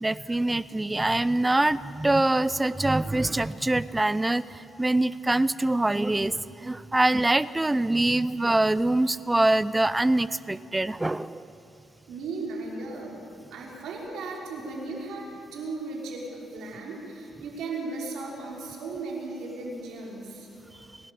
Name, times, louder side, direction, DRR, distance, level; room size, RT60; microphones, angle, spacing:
voice 1, 0.0-11.5, right 2 dB, 15° right, 17 dB, 0.5 m, -24 dB
voice 2, 12.1-13.1 13.5-15.3 15.5-16.2 16.5-20.5, right 3 dB, 80° right, -2 dB, 5.5 m, -36 dB
29.0 x 11.5 x 8.6 m, 3.0 s
cardioid pair, 90°, 0 cm